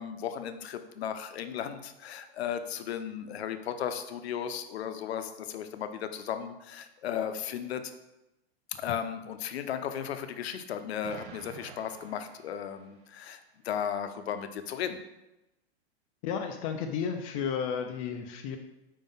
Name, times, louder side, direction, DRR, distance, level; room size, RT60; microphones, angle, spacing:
voice 1, 0.0-7.9 8.7-15.0, left 8 dB, 70° left, 9 dB, 0.7 m, -35 dB
Explosion, 11.0-13.2, right 7 dB, 50° right, 0.7 m, -49 dB
voice 2, 16.2-18.6, left 7 dB, 35° left, 5 dB, 0.5 m, -32 dB
5.1 x 3.7 x 5.5 m, 0.95 s
hypercardioid pair, 135°, 32 cm